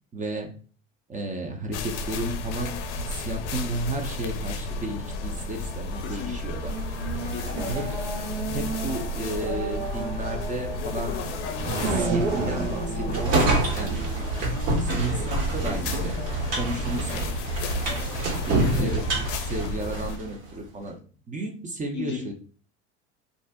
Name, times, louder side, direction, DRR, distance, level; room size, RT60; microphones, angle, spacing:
voice 1, 0.1-0.5 1.1-6.7 7.7-8.0 8.5-11.2 11.7-14.0 14.8-16.1 16.6-17.3 18.5-19.2 19.5-20.9 21.3-22.3, right 2 dB, 20° right, 3 dB, 0.6 m, -33 dB
sound 1, 1.7-20.2, left 2 dB, 90° left, 0.5 m, -33 dB
voice 2, 6.0-6.6 7.3-7.7 15.1-15.3 18.7-19.0 21.9-22.3, left 7 dB, 35° left, 4 dB, 0.6 m, -36 dB
Race car auto racing / Accelerating revving vroom, 6.6-15.7, right 3 dB, 85° right, 0.9 m, -32 dB
sound 2, 13.1-20.3, right 2 dB, 60° right, 1.4 m, -27 dB
2.6 x 2.0 x 3.4 m, 0.40 s
hypercardioid pair, 90°, 34 cm